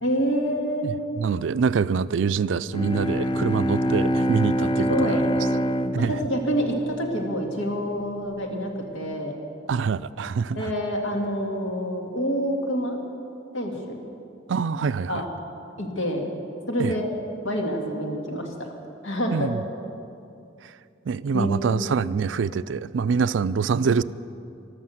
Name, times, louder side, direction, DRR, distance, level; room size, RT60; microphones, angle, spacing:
voice 1, 0.0-0.9 4.6-5.2 6.0-9.3 10.6-13.0 13.5-14.0 15.1-15.2 15.8-16.3 16.7-17.1 17.4-18.5 19.0-19.5 21.3-21.8, equal, 90° left, 2 dB, 2.1 m, -27 dB
voice 2, 0.8-5.3 5.9-6.1 9.7-10.7 14.5-15.2 16.8-16.9 19.3-19.6 21.1-24.0, right 5 dB, 80° right, 16 dB, 0.4 m, -25 dB
Bowed string instrument, 2.6-7.4, equal, 25° left, 0.4 m, -25 dB
13.0 x 12.0 x 7.8 m, 2.6 s
head